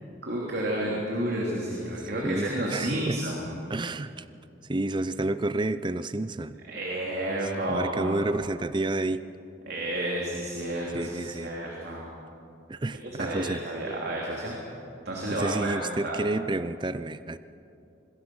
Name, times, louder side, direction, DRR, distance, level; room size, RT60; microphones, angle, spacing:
voice 1, 0.2-3.5 6.7-8.3 9.7-12.1 12.9-14.6 15.0-16.2, right 1 dB, 55° right, -3 dB, 3.2 m, -31 dB
voice 2, 2.2-3.2 3.7-4.2 4.7-6.6 7.7-9.2 10.9-11.5 12.7-13.6 15.3-17.4, right 2 dB, 25° right, 13 dB, 0.5 m, -30 dB
25.5 x 21.0 x 6.2 m, 2.7 s
head